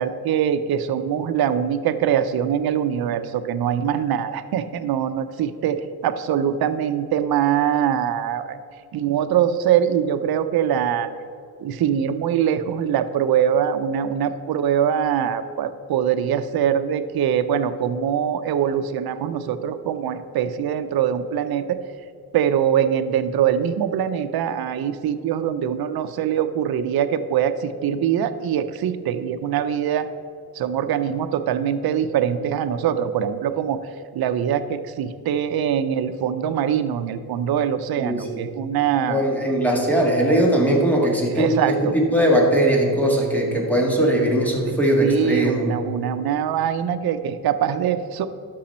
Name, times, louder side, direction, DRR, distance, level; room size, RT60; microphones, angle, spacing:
voice 1, 0.0-8.6 8.9-11.1 11.6-21.8 22.3-30.1 30.5-33.8 34.1-39.3 41.0-42.0 43.7-43.9 44.6-48.3, right 9 dB, 70° right, 9 dB, 0.7 m, -23 dB
voice 2, 38.0-38.4 39.1-45.7, right 1 dB, 5° left, -1 dB, 1.9 m, -20 dB
11.5 x 6.3 x 4.3 m, 2.4 s
cardioid pair, 115°, 38 cm